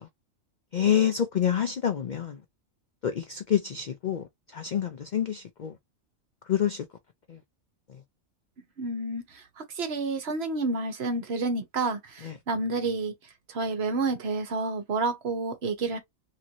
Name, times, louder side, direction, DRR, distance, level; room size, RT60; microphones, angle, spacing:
voice 1, 0.7-2.4 3.0-4.2 4.5-5.7 6.5-6.8, left 9 dB, 85° left, 0.4 m, -27 dB
voice 2, 8.8-13.1 13.5-16.0, right 3 dB, 55° right, 1.0 m, -30 dB
2.9 x 2.5 x 2.7 m
omnidirectional pair, 1.4 m